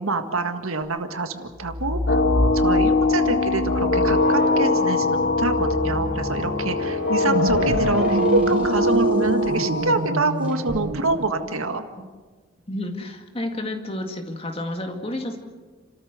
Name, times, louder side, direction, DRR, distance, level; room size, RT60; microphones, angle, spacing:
voice 1, 0.0-2.2 2.5-11.8, right 2 dB, 85° right, 7 dB, 1.8 m, -26 dB
sound 1, 1.5-3.0 3.4-8.9 10.5-10.8, equal, 5° right, 4.0 m, -29 dB
sound 2, 2.1-10.2, left 3 dB, 50° left, 1.5 m, -22 dB
sound 3, 7.1-11.7, right 2 dB, 65° right, 1.2 m, -24 dB
voice 2, 12.7-15.4, left 1 dB, 25° left, 5 dB, 2.1 m, -30 dB
30.0 x 13.5 x 8.1 m, 1.4 s
head